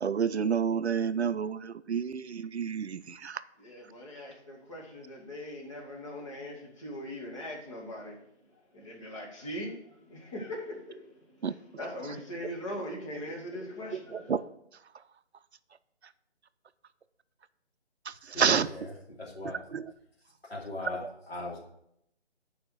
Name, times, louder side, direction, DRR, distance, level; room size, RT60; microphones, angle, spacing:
voice 1, 0.0-3.4 11.4-11.5 14.1-14.4 18.1-18.7 19.7-19.9 21.0-21.1, right 7 dB, 70° right, 13 dB, 0.5 m, -29 dB
voice 2, 3.6-8.2 8.7-9.8 10.1-11.0 11.4-14.3, left 1 dB, 25° left, -2 dB, 1.7 m, -40 dB
voice 3, 18.3-19.6 20.5-21.6, left 2 dB, 60° left, -3 dB, 2.7 m, -39 dB
6.8 x 4.9 x 6.3 m, 0.75 s
figure-of-eight pair, 155°, 34 cm